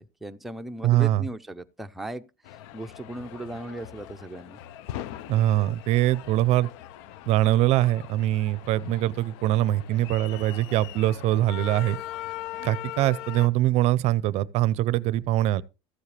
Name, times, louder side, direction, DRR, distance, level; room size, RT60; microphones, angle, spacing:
voice 1, 0.0-2.3 2.7-4.6, right 1 dB, ahead, 0.5 m, -37 dB
voice 2, 0.8-1.2 5.3-6.7 7.3-12.0 12.6-15.6, right 14 dB, 50° right, 0.5 m, -23 dB
sound 1, 2.4-13.5, left 13 dB, 80° left, 0.7 m, -40 dB
14.0 x 7.4 x 3.3 m
cardioid pair, 150°, 14 cm